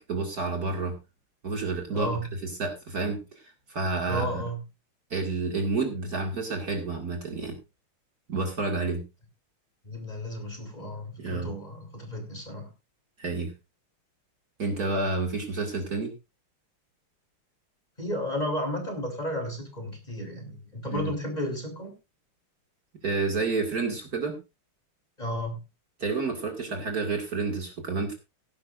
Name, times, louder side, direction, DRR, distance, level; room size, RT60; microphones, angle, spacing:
voice 1, 0.1-1.0 1.4-4.4 5.1-7.6 8.3-9.0 11.2-11.5 13.2-13.5 14.6-16.1 20.9-21.1 23.0-24.4 26.0-28.1, right 3 dB, 45° right, 2 dB, 2.5 m, -29 dB
voice 2, 1.9-2.2 4.1-4.6 9.8-12.7 18.0-21.9 25.2-25.6, equal, 20° left, 3 dB, 3.5 m, -33 dB
17.0 x 11.0 x 2.6 m, 0.26 s
omnidirectional pair, 2.3 m